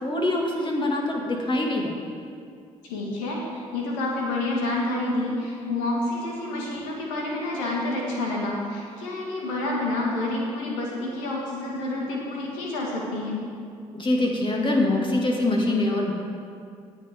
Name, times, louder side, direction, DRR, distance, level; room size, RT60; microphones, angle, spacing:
voice 1, 0.0-2.0 13.9-16.1, left 2 dB, 30° left, 0 dB, 2.3 m, -24 dB
voice 2, 2.8-13.4, left 2 dB, 75° left, -2 dB, 2.0 m, -28 dB
18.5 x 6.3 x 3.7 m, 2.3 s
figure-of-eight pair, 45°, 17 cm